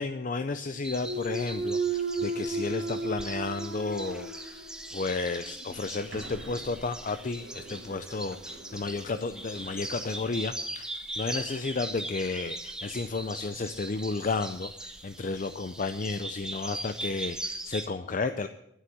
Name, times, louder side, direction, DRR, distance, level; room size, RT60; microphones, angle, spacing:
voice 1, 0.0-18.5, left 3 dB, 45° left, 10 dB, 0.5 m, -33 dB
sound 1, 0.8-17.9, right 1 dB, 5° right, 0.9 m, -40 dB
Thump thud, 0.9-5.0 5.4-10.1, right 3 dB, 65° right, 1.5 m, -36 dB
11.5 x 9.7 x 7.8 m, 0.79 s
head